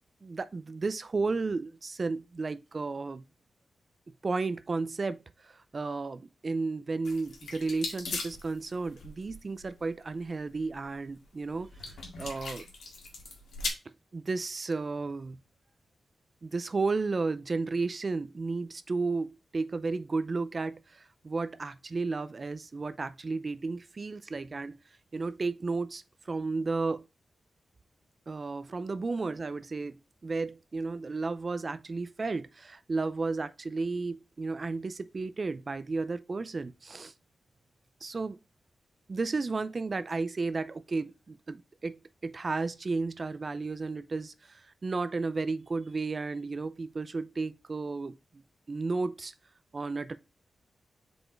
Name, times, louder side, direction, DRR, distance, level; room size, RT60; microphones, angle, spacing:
voice 1, 0.2-3.2 4.2-11.7 12.2-12.7 14.1-15.4 16.4-24.8 25.1-27.0 28.3-37.1 38.0-38.4 39.1-48.4 48.7-49.3 49.7-50.2, right 3 dB, 40° right, 0.4 m, -33 dB
sound 1, 7.0-13.7, left 3 dB, 85° left, 1.8 m, -40 dB
5.0 x 4.2 x 4.5 m
wide cardioid pair, 105°, 0 cm